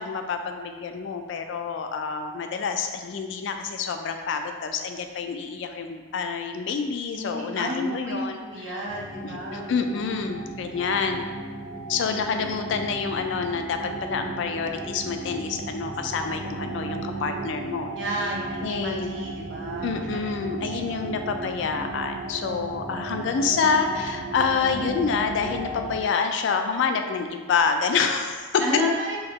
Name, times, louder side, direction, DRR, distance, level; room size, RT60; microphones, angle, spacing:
voice 1, 0.0-8.9 9.2-11.3 11.9-18.3 18.6-19.2 19.8-28.6, left 5 dB, 70° left, 6 dB, 0.3 m, -27 dB
voice 2, 7.1-9.6 18.0-20.0 20.8-21.1 28.6-29.2, equal, 75° right, -4 dB, 0.8 m, -31 dB
sound 1, 8.9-26.0, right 2 dB, 45° right, 0.4 m, -35 dB
3.5 x 2.8 x 3.0 m, 1.4 s
head